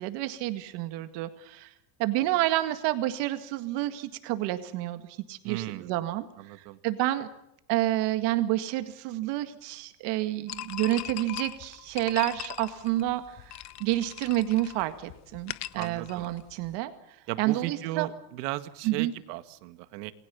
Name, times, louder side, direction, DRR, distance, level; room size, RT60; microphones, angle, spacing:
voice 1, 0.0-1.7 2.0-7.3 7.7-16.9 17.4-18.1 18.8-19.1, right 15 dB, 60° right, 9 dB, 2.0 m, -29 dB
voice 2, 5.4-5.9 6.4-6.8 15.7-16.3 17.3-20.1, right 16 dB, 75° right, 11 dB, 2.0 m, -36 dB
sound 1, 10.5-16.7, left 13 dB, 35° left, 0.9 m, -40 dB
28.0 x 21.0 x 7.0 m, 0.80 s
cardioid pair, 150°, 47 cm